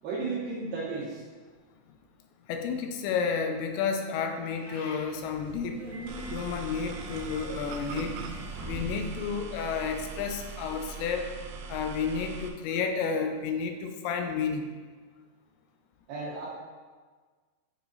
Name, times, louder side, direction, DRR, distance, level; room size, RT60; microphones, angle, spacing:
voice 1, 0.0-1.2 16.1-16.5, right 3 dB, 65° right, -7 dB, 2.5 m, -33 dB
voice 2, 2.5-5.9 6.3-8.2 8.6-11.3 11.7-14.7, left 6 dB, 80° left, 5 dB, 2.7 m, -31 dB
Meow, 4.4-5.2, left 2 dB, 60° left, 2.2 m, -46 dB
Subway metro underground, 5.1-9.3, right 1 dB, 35° right, 1.4 m, -43 dB
sound 1, 6.1-12.5, right 4 dB, 85° right, 3.1 m, -41 dB
8.7 x 4.8 x 4.0 m, 1.5 s
omnidirectional pair, 5.4 m